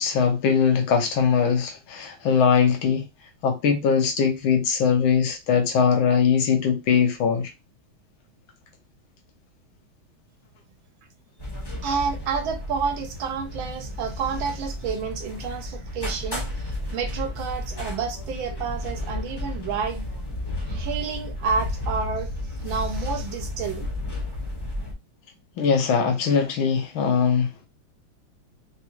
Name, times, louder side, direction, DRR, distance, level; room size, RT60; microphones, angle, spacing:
voice 1, 0.0-3.1 3.4-7.5 25.6-27.5, left 6 dB, 85° left, 1.6 m, -21 dB
sound 1, 11.4-24.9, left 1 dB, 30° left, 0.4 m, -32 dB
voice 2, 11.8-20.1 20.7-22.3 22.6-23.9, right 6 dB, 80° right, 1.4 m, -29 dB
4.0 x 2.3 x 2.9 m
omnidirectional pair, 2.2 m